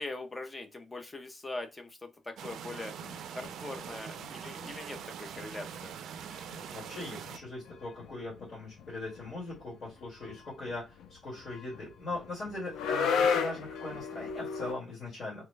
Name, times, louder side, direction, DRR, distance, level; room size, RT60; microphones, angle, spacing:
voice 1, 0.0-2.9 3.3-5.9, left 2 dB, 15° left, 0.5 m, -42 dB
sound 1, 2.4-7.4, right 8 dB, 75° right, 0.3 m, -43 dB
sound 2, 3.0-3.9 4.2-5.1 5.3-5.5 5.7-5.9 6.1-14.7, left 6 dB, 90° left, 0.5 m, -35 dB
voice 2, 6.5-15.5, left 2 dB, 45° left, 1.6 m, -40 dB
3.0 x 2.2 x 3.1 m
cardioid pair, 140°, 0 cm